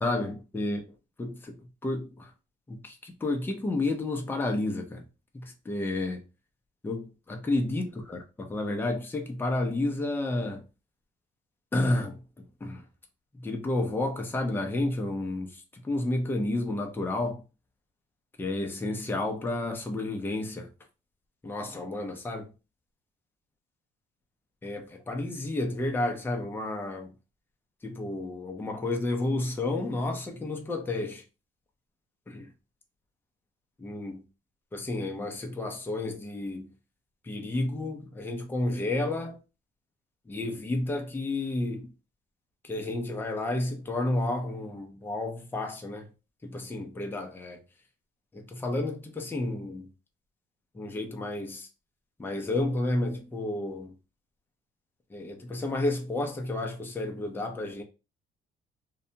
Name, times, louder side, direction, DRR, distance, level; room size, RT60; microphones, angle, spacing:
voice 1, 0.0-0.8 1.2-2.3 2.7-5.0 5.3-6.2 6.8-10.6 11.7-12.9 13.3-17.4 18.4-20.7 21.4-22.5 24.6-27.1 27.8-31.2 32.3-32.5 33.8-34.2 34.7-36.7 37.2-39.4 40.3-41.9 42.6-46.1 46.4-47.6 48.3-49.9 50.7-51.7 52.2-53.9 55.1-57.8, left 2 dB, 10° left, 0.5 m, -31 dB
2.7 x 2.2 x 2.7 m
cardioid pair, 110°, 17 cm